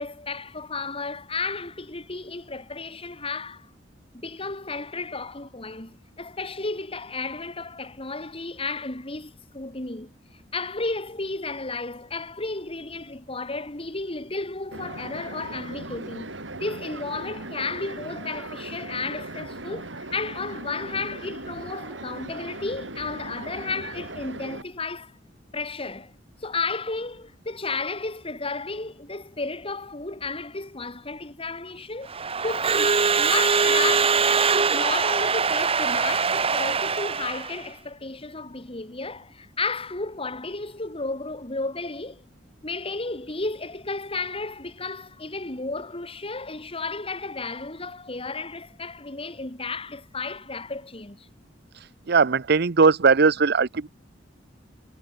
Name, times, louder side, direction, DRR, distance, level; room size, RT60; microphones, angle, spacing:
voice 1, 0.0-3.7 4.1-10.1 10.5-25.1 25.5-26.1 26.4-32.1 32.4-34.3 34.7-42.2 42.6-51.3, left 3 dB, 30° left, 2.8 m, -33 dB
sound 1, 14.7-24.6, right 2 dB, 90° right, 5.3 m, -38 dB
Crowd / Alarm, 32.1-37.6, right 5 dB, 30° right, 1.1 m, -22 dB
voice 2, 52.1-53.9, right 4 dB, 60° right, 0.7 m, -19 dB
head